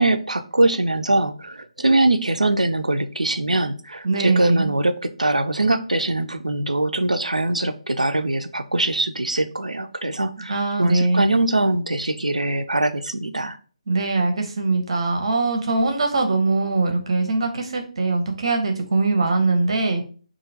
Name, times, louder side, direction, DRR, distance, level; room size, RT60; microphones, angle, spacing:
voice 1, 0.0-4.9 5.2-13.6, right 2 dB, 80° right, 9 dB, 0.5 m, -22 dB
voice 2, 4.0-4.7 10.5-11.3 13.9-20.0, right 3 dB, 50° right, 4 dB, 0.9 m, -22 dB
4.9 x 2.6 x 2.8 m, 0.40 s
figure-of-eight pair, 145°, 4 cm